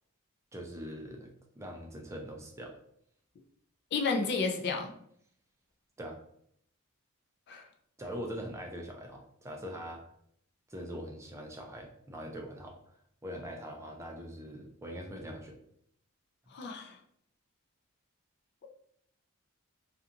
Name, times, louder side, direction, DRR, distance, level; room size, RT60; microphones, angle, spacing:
voice 1, 0.5-1.3 1.6-2.8 6.0-6.2 8.0-10.0 10.7-12.8 13.2-15.6 16.5-16.6, equal, 15° right, 1 dB, 0.4 m, -42 dB
voice 2, 3.9-4.9 7.5-7.6 16.5-17.0, left 4 dB, 50° left, 2 dB, 0.4 m, -31 dB
2.4 x 2.3 x 2.8 m, 0.67 s
head